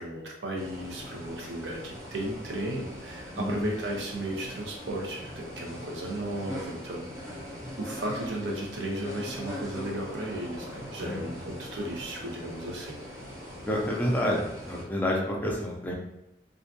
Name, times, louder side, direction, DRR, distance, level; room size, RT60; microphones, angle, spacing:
voice 1, 0.0-7.1 7.8-13.0, right 1 dB, 90° right, -1 dB, 0.6 m, -35 dB
sound 1, 0.5-14.8, equal, 15° right, 0.7 m, -42 dB
voice 2, 11.0-11.4 13.7-15.9, equal, 10° left, -2 dB, 0.4 m, -29 dB
2.5 x 2.2 x 2.6 m, 0.85 s
head